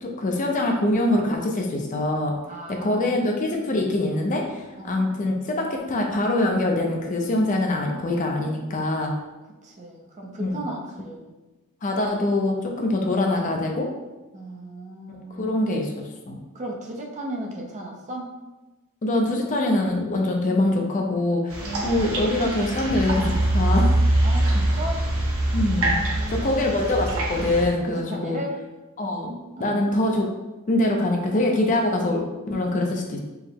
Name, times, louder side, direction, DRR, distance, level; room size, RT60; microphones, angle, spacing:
voice 1, 0.0-2.4 2.7-9.1 10.4-10.6 11.8-13.9 15.1-16.4 19.0-24.0 25.5-26.0 26.3-28.4 29.0-29.3 29.6-30.3 30.7-33.2, left 1 dB, 35° left, 1 dB, 0.5 m, -24 dB
voice 2, 2.5-3.2 4.8-5.1 9.6-11.4 14.3-15.5 16.5-18.3 21.6-22.2 24.2-25.1 25.7-26.7 27.9-28.6 29.6-29.8, right 1 dB, 35° right, -1 dB, 0.6 m, -35 dB
sound 1, 21.5-27.7, right 1 dB, 75° right, 0.9 m, -23 dB
4.6 x 2.1 x 3.5 m, 1.1 s
head